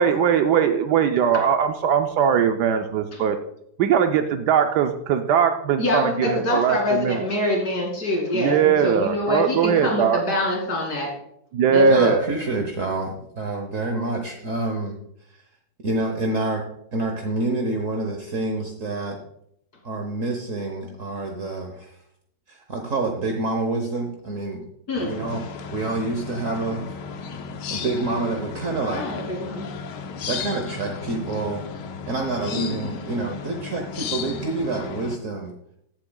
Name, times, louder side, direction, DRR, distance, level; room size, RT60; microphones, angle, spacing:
voice 1, 0.0-3.4 3.8-7.2 8.3-10.2 11.5-12.3, right 7 dB, 75° right, 7 dB, 1.2 m, -20 dB
voice 2, 5.8-11.2 11.7-12.2 24.9-25.1 28.9-29.7 32.4-32.9, left 1 dB, 60° left, 0 dB, 3.1 m, -25 dB
voice 3, 11.9-15.0 15.3-15.4 15.8-16.6 16.9-19.2 19.8-21.9 22.5-24.6 25.0-27.0 27.7-29.1 30.2-31.6 32.0-35.5, right 2 dB, 50° right, 3 dB, 1.2 m, -27 dB
sound 1, 24.9-35.2, left 6 dB, 85° left, 1.4 m, -35 dB
15.0 x 8.3 x 2.3 m, 0.72 s
omnidirectional pair, 1.9 m